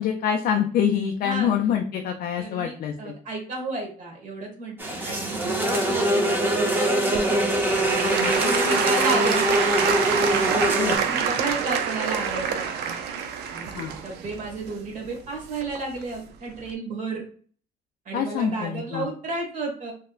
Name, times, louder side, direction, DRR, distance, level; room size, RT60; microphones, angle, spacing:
voice 1, 0.0-3.1 8.2-8.3 10.7-11.0 13.8-13.9 18.1-19.1, left 8 dB, 65° left, 3 dB, 0.4 m, -25 dB
voice 2, 2.4-7.3 7.8-9.9 10.3-13.0 13.5-17.2 18.0-19.9, right 3 dB, 50° right, 0 dB, 1.3 m, -33 dB
sound 1, 4.8-11.0, right 1 dB, 10° right, 0.7 m, -23 dB
Applause / Crowd, 7.1-16.0 16.6-16.7, right 7 dB, 75° right, 0.5 m, -27 dB
3.2 x 2.8 x 2.4 m, 0.43 s
cardioid pair, 110°, 17 cm